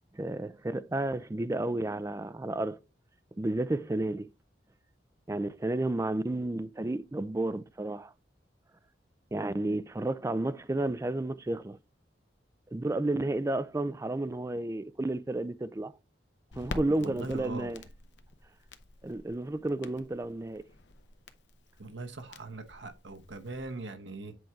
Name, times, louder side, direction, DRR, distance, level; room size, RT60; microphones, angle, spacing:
voice 1, 0.1-2.8 3.4-4.3 5.3-8.1 9.3-11.8 12.7-15.9 16.6-17.8 19.0-20.6, right 2 dB, 15° right, 0.4 m, -32 dB
Crackle, 16.5-23.8, left 2 dB, 75° left, 0.8 m, -47 dB
voice 2, 17.0-17.7 21.8-24.4, right 3 dB, 85° right, 1.1 m, -41 dB
8.0 x 4.4 x 3.5 m
head